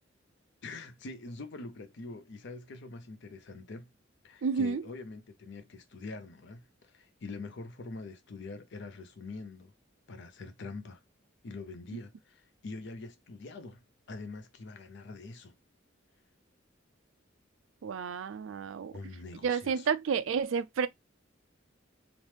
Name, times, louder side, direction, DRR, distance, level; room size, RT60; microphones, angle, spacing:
voice 1, 0.6-3.9 4.2-9.7 10.1-11.0 11.4-15.5 18.9-19.9, left 3 dB, 65° left, 0.6 m, -44 dB
voice 2, 4.4-4.8 17.8-19.0 19.4-20.9, right 6 dB, 85° right, 0.4 m, -30 dB
3.0 x 2.0 x 3.2 m
head